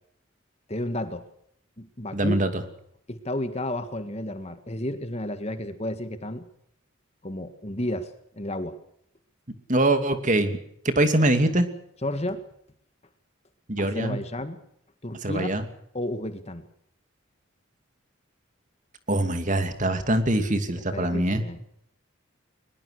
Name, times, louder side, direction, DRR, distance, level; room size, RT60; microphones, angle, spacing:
voice 1, 0.7-1.2 1.8-2.4 3.1-6.4 7.2-8.8 12.0-12.4 13.8-14.6 15.0-15.6 15.9-16.6 20.9-21.7, left 1 dB, 30° left, 9 dB, 1.8 m, -32 dB
voice 2, 2.1-2.5 9.7-10.6 10.8-11.7 13.7-14.2 15.2-15.6 19.1-21.4, right 1 dB, 40° right, 8 dB, 2.6 m, -23 dB
22.5 x 21.5 x 6.6 m, 0.71 s
head